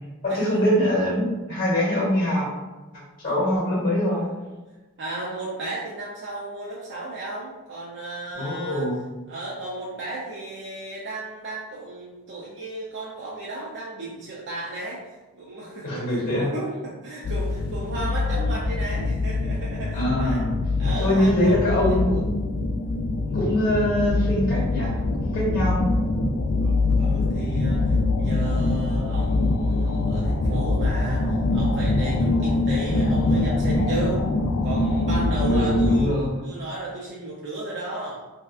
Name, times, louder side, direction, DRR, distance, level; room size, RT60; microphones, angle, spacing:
voice 1, 0.2-2.5 3.2-4.3 8.3-9.0 15.8-16.5 19.9-20.5 21.0-22.3 23.3-25.8 32.3-32.5 35.4-36.4, left 1 dB, 40° left, -3 dB, 1.2 m, -23 dB
voice 2, 5.0-8.9 9.3-15.0 15.3-20.4 20.8-22.0 23.3-23.5 26.6-34.2 34.6-36.1 36.4-38.2, right 2 dB, 55° right, -6 dB, 0.5 m, -34 dB
sound 1, 17.2-36.1, left 2 dB, 75° left, 0.4 m, -24 dB
3.3 x 2.8 x 2.4 m, 1.2 s
head